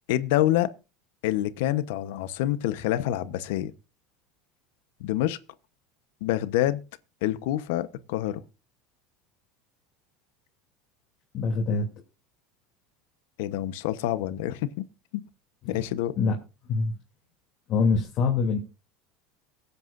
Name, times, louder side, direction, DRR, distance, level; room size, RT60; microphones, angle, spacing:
voice 1, 0.1-0.7 1.2-3.7 5.0-5.4 6.2-6.8 7.2-8.4 13.4-14.9 15.1-15.2 15.7-16.2, left 14 dB, 75° left, 1.0 m, -27 dB
voice 2, 11.3-11.9 15.6-15.8 16.2-16.3 16.7-17.0 17.7-18.6, left 4 dB, 40° left, 3.0 m, -24 dB
23.0 x 8.2 x 2.6 m
supercardioid pair, 150°, 0 cm